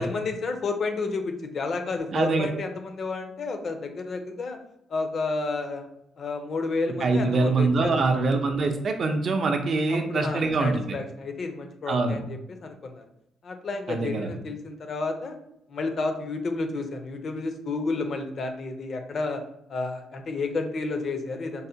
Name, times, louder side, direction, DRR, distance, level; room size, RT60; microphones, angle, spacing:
voice 1, 0.0-4.6 4.9-5.9 6.2-8.2 9.9-13.0 13.4-15.4 15.7-19.4 19.7-21.7, left 3 dB, 45° left, 6 dB, 0.5 m, -31 dB
voice 2, 2.1-2.5 7.0-10.9 11.9-12.2 13.9-14.3, right 3 dB, 45° right, 5 dB, 0.5 m, -24 dB
5.3 x 2.1 x 2.7 m, 0.78 s
cardioid pair, 130°, 0 cm